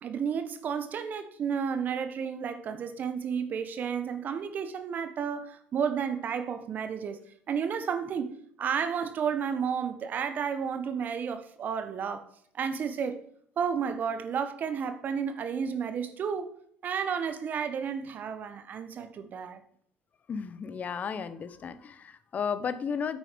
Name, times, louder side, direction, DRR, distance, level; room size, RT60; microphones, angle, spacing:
voice 1, 0.0-7.2 7.5-8.3 8.6-12.2 12.5-13.2 13.6-16.5 16.8-19.6, right 7 dB, 50° right, 1.2 m, -32 dB
voice 2, 20.3-23.2, left 6 dB, 40° left, 1.1 m, -34 dB
9.1 x 7.7 x 5.2 m
hypercardioid pair, 75°, 4 cm